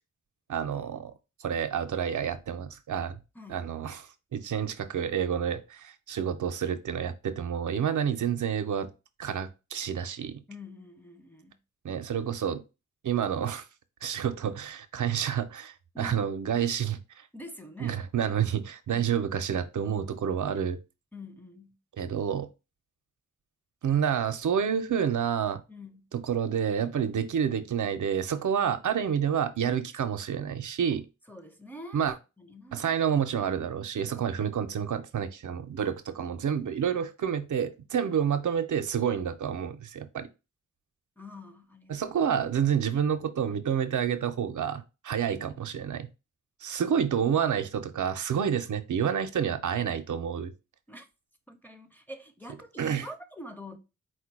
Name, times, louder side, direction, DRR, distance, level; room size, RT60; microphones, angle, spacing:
voice 1, 0.5-1.1 1.4-3.2 3.5-4.0 4.3-8.9 9.2-10.4 11.8-12.6 13.0-13.6 14.0-17.0 17.8-20.8 22.0-22.5 23.8-25.6 26.3-31.0 31.9-32.1 32.7-40.3 41.9-46.1 46.6-50.5 52.8-53.1, right 8 dB, 80° right, 0.6 m, -29 dB
voice 2, 3.3-3.7 10.5-11.6 15.9-16.2 17.3-18.1 18.9-19.2 21.1-21.8 25.7-26.1 31.3-32.0 32.4-33.0 41.2-42.0 45.3-45.5 50.9-51.1 51.5-53.8, left 1 dB, 5° left, 0.6 m, -46 dB
4.4 x 2.2 x 4.5 m
wide cardioid pair, 90°, 30 cm